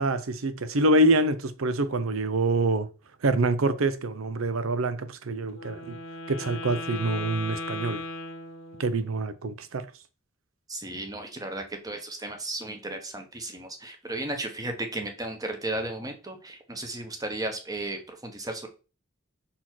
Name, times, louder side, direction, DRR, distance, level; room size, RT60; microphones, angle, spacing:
voice 1, 0.0-2.9 3.2-6.0 6.3-8.0 8.8-9.9, right 2 dB, 85° right, 0.7 m, -25 dB
Wind instrument woodwind instrument, 5.5-9.1, left 2 dB, 75° left, 1.0 m, -37 dB
voice 2, 10.7-18.7, right 2 dB, 20° right, 1.1 m, -34 dB
5.7 x 4.3 x 4.5 m
head